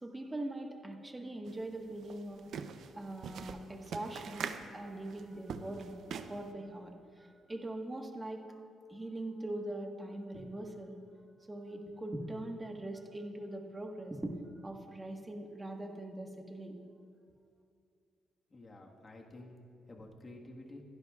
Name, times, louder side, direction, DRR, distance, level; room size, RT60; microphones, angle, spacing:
voice 1, 0.0-2.4 2.9-8.5 8.9-11.0 11.5-16.8, right 1 dB, 15° right, 2 dB, 1.5 m, -42 dB
sound 1, 1.4-1.5 1.9-6.5, right 7 dB, 70° right, 0.6 m, -43 dB
voice 2, 18.5-19.5 19.9-20.8, left 2 dB, 30° left, 0 dB, 1.6 m, -50 dB
22.0 x 11.5 x 2.4 m, 2.4 s
cardioid pair, 90°, 0 cm